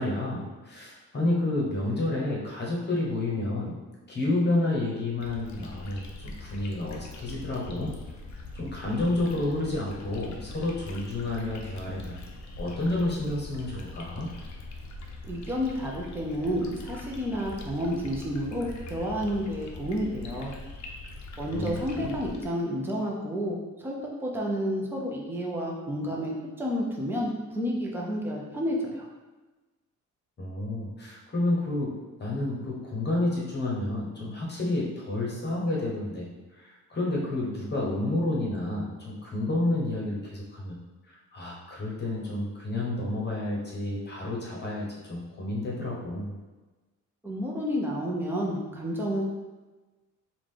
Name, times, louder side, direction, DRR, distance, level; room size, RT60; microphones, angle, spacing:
voice 1, 0.0-3.8 4.1-7.9 8.5-12.2 12.6-14.3 21.5-22.2 30.4-31.9 32.2-36.3 36.5-40.8 41.1-46.3, left 2 dB, 35° left, -3 dB, 1.0 m, -30 dB
sound 1, 5.2-22.4, left 3 dB, 65° left, 0.7 m, -42 dB
voice 2, 15.3-20.5 21.4-23.9 24.2-29.1 47.2-49.3, equal, 5° right, -3 dB, 0.7 m, -30 dB
5.0 x 2.5 x 3.7 m, 1.2 s
wide cardioid pair, 155°, 31 cm